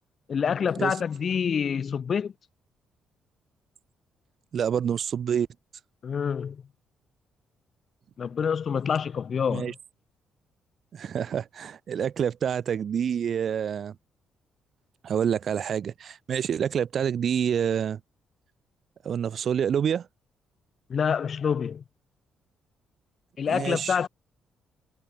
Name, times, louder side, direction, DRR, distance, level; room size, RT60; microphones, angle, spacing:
voice 1, 0.3-2.3 6.0-6.6 8.2-9.7 20.9-21.8 23.4-24.1, left 7 dB, 50° left, 0.3 m, -27 dB
voice 2, 4.5-5.5 9.5-9.7 10.9-13.9 15.0-18.0 19.0-20.1 23.5-24.0, right 8 dB, 55° right, 0.7 m, -27 dB
cardioid pair, 90°, 0 cm